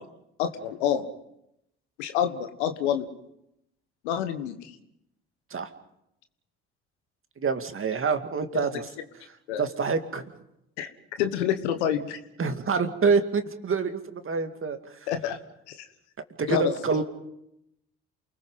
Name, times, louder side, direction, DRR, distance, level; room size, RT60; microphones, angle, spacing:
voice 1, 0.4-1.0 2.0-3.1 4.0-4.7 8.6-8.7 9.5-9.6 10.8-10.9 11.2-12.2 15.1-15.4 15.7-15.8 16.5-16.7, left 9 dB, 85° left, 9 dB, 1.5 m, -27 dB
voice 2, 7.4-8.9 9.6-10.3 12.4-15.0 16.4-17.0, right 5 dB, 40° right, 7 dB, 2.3 m, -26 dB
28.5 x 20.0 x 5.6 m, 0.83 s
hypercardioid pair, 55°, 33 cm